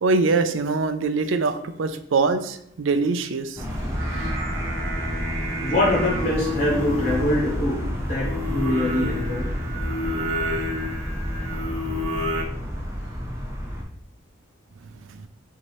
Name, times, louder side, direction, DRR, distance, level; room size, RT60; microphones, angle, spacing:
voice 1, 0.0-3.6 15.1-15.2, right 3 dB, 85° right, 10 dB, 0.4 m, -23 dB
sound 1, 3.6-13.8, equal, 15° right, 0.7 m, -30 dB
Singing, 3.7-12.4, left 1 dB, 70° right, 1.0 m, -31 dB
voice 2, 5.6-9.5, left 1 dB, 35° left, -5 dB, 1.2 m, -24 dB
5.8 x 2.8 x 3.1 m, 0.73 s
head